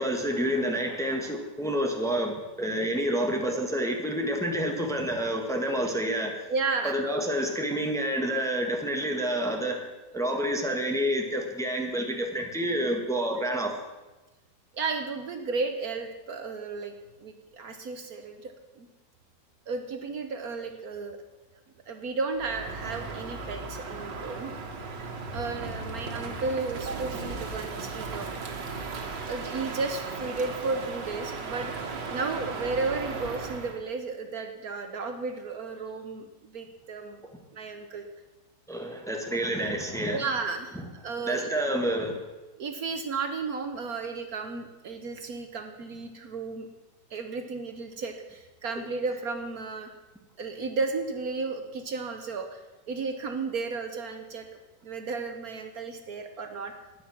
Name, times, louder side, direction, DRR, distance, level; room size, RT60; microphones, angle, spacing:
voice 1, 0.0-6.3 6.8-9.8 10.1-13.7 38.7-40.2 40.7-40.9 41.2-42.2 48.7-48.8, equal, ahead, 2 dB, 1.4 m, -28 dB
voice 2, 6.5-7.0 14.7-16.9 17.2-18.9 19.7-21.2 21.9-24.5 25.3-28.3 29.2-31.7 32.1-37.2 37.5-38.1 40.1-41.6 42.6-46.7 47.1-49.9 50.4-52.6 52.9-54.4 54.8-56.7, right 4 dB, 60° right, 6 dB, 1.4 m, -33 dB
Crow, 22.3-33.8, right 4 dB, 90° right, 2.1 m, -36 dB
12.5 x 9.9 x 7.2 m, 1.1 s
omnidirectional pair, 1.9 m